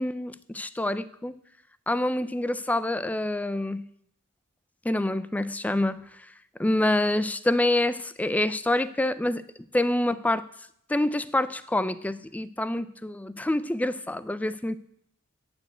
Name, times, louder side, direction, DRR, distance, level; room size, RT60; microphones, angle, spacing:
voice 1, 0.0-1.3 1.9-3.9 4.8-6.0 6.6-9.4 9.7-10.5 10.9-14.8, left 1 dB, 5° left, 16 dB, 0.3 m, -26 dB
9.1 x 6.9 x 8.0 m, 0.73 s
head